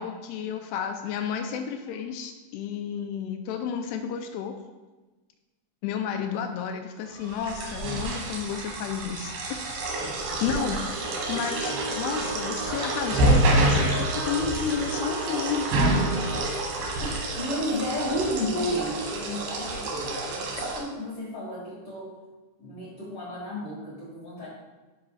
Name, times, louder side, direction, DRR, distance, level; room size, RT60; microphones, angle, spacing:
voice 1, 0.0-4.5 5.8-9.3 10.0-15.7, left 7 dB, 85° left, 5 dB, 2.3 m, -32 dB
sound 1, 7.2-20.8, right 2 dB, 70° right, 3.3 m, -27 dB
sound 2, 11.5-16.5, right 3 dB, 90° right, 1.3 m, -38 dB
voice 2, 16.8-22.1 22.6-24.5, equal, 70° left, -6 dB, 1.3 m, -33 dB
13.0 x 5.7 x 2.4 m, 1.2 s
omnidirectional pair, 5.1 m